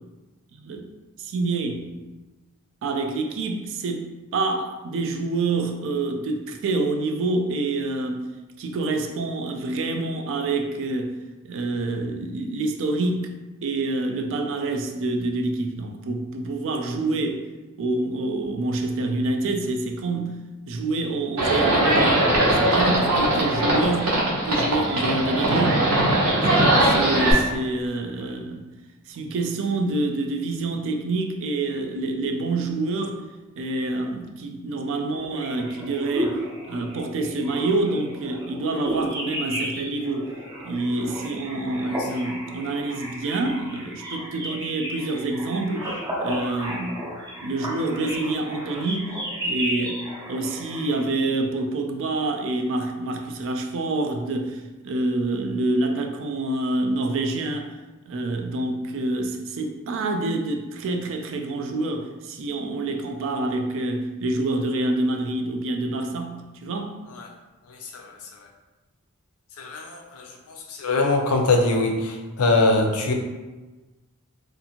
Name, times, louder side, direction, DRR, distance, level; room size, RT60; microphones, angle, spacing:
voice 1, 0.5-0.9 1.2-2.1 2.8-13.3 13.6-17.5 17.8-20.4 20.7-26.0 26.4-28.7 29.1-33.2 33.6-40.4 40.6-47.1 47.4-49.2 49.4-57.8 58.1-67.0, right 2 dB, 60° right, 0.3 m, -27 dB
Livestock farm animals working animals, 21.4-27.3, right 1 dB, 80° right, 0.8 m, -20 dB
sound 1, 35.1-51.0, equal, 15° right, 0.6 m, -33 dB
voice 2, 69.6-70.3 70.8-73.1, left 2 dB, 75° left, 0.5 m, -22 dB
2.6 x 2.4 x 2.8 m
head